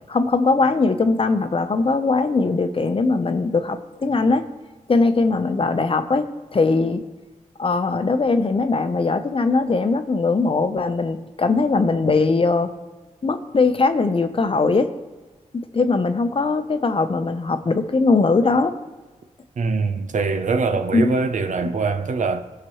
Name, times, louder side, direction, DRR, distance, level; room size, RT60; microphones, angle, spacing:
voice 1, 0.1-4.4 4.9-7.0 7.6-12.7 13.2-14.9 15.7-18.7 20.9-21.1, left 3 dB, 45° left, 0.8 m, -20 dB
voice 2, 19.6-22.4, right 4 dB, 70° right, 0.7 m, -23 dB
17.0 x 6.0 x 3.1 m
cardioid pair, 65°, 13 cm